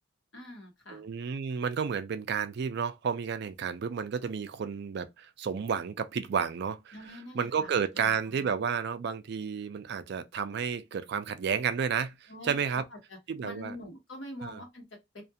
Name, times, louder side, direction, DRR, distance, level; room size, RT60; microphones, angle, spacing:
voice 1, 0.3-1.1 6.9-7.7 7.9-8.6 12.3-13.2 13.4-15.2, left 1 dB, 70° left, 1.1 m, -45 dB
voice 2, 0.9-6.9 7.3-12.8 13.3-13.7 14.4-14.6, right 6 dB, 60° right, 0.4 m, -31 dB
2.4 x 2.3 x 2.7 m
head